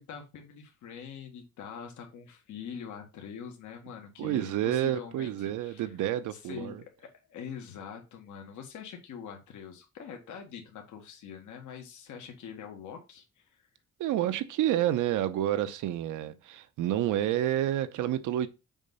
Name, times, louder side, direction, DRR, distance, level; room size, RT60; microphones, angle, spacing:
voice 1, 0.0-5.9 6.3-13.6 16.3-16.4, left 7 dB, 75° left, 1.5 m, -44 dB
voice 2, 4.2-6.8 14.0-18.5, right 12 dB, 85° right, 0.8 m, -29 dB
7.2 x 2.7 x 5.5 m
cardioid pair, 90°, 30 cm